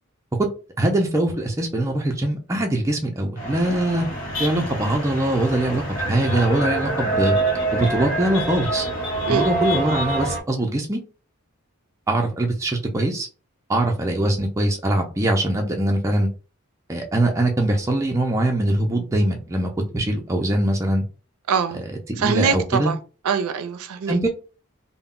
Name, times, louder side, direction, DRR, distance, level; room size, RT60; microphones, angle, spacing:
voice 1, 0.8-4.1 4.4-7.4 7.7-8.9 9.3-11.0 12.1-13.3 13.7-16.3 16.9-21.0 22.2-22.9 24.1-24.3, right 1 dB, 15° right, 0.4 m, -22 dB
sound 1, 3.4-10.4, right 2 dB, 60° left, 0.8 m, -26 dB
voice 2, 21.5-21.8 22.2-23.0 23.2-24.2, right 6 dB, 85° right, 0.4 m, -23 dB
2.2 x 2.0 x 3.6 m
head